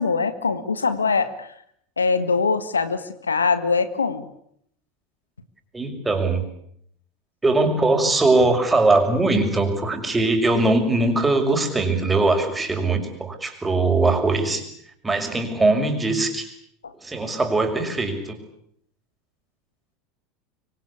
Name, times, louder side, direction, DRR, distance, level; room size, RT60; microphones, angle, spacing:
voice 1, 0.0-1.5 2.0-4.3 16.8-16.9, left 4 dB, 85° left, 12 dB, 1.6 m, -22 dB
voice 2, 5.7-6.4 7.4-14.6 15.0-16.5 17.0-18.4, right 2 dB, 15° right, 5 dB, 6.1 m, -21 dB
25.5 x 24.5 x 8.6 m, 0.70 s
figure-of-eight pair, 80°, 0 cm